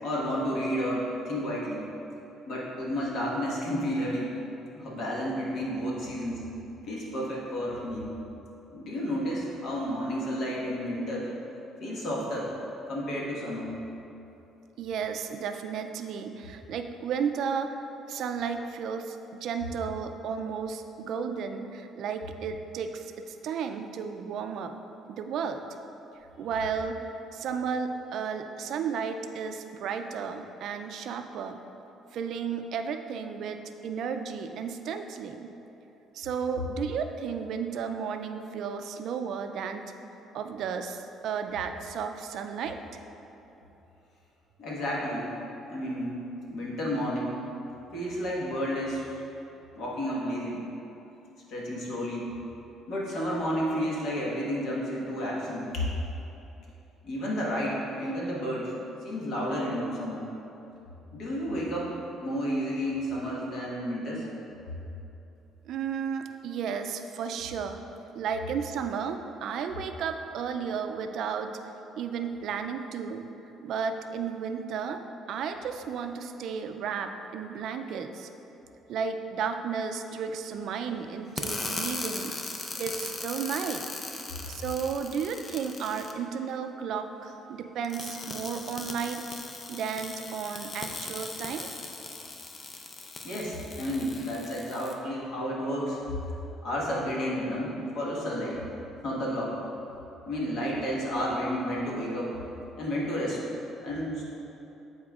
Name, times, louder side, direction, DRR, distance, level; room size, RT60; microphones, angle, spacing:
voice 1, 0.0-1.9 2.5-4.3 4.7-6.4 6.9-8.1 8.7-11.3 11.8-12.5 12.9-13.7 44.6-45.3 45.7-46.2 46.5-47.4 47.9-49.2 49.7-50.6 51.5-52.3 52.9-55.9 57.0-58.7 59.0-60.2 61.1-64.3 93.2-96.0 96.6-98.6 99.0-99.6 100.2-102.3 102.8-103.4 103.8-104.2, equal, 65° left, -4 dB, 1.4 m, -31 dB
voice 2, 14.8-17.8 18.1-24.7 25.1-25.6 26.4-31.6 32.1-35.5 36.1-39.8 40.3-42.8 65.7-67.8 68.1-71.5 72.0-73.3 73.6-75.0 75.3-78.3 78.9-82.4 82.8-83.9 84.5-89.2 89.7-91.7, right 6 dB, 65° right, 7 dB, 0.3 m, -33 dB
sound 1, 81.4-86.1 87.8-94.9, left 3 dB, 35° left, 0.5 m, -38 dB
9.3 x 4.3 x 2.4 m, 3.0 s
cardioid pair, 95°, 0 cm